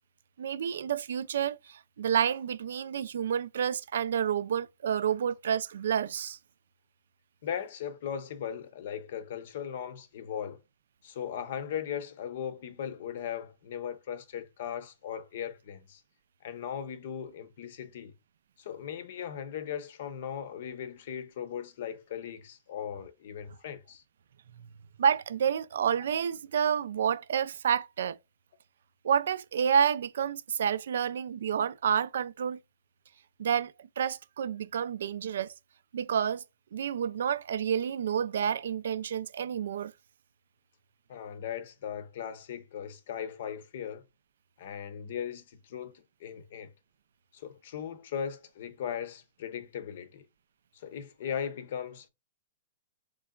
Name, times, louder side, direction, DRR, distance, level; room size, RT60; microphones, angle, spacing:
voice 1, 0.4-6.4 25.0-28.2 29.0-32.6 33.4-35.5 35.9-36.4 36.7-39.9, right 8 dB, 75° right, 0.3 m, -29 dB
voice 2, 7.4-10.6 11.0-16.0 16.4-18.1 18.6-24.0 41.1-44.0 44.6-46.7 47.3-50.2 50.7-52.1, left 8 dB, 50° left, 0.7 m, -38 dB
3.8 x 3.2 x 2.3 m
hypercardioid pair, 170°, 0 cm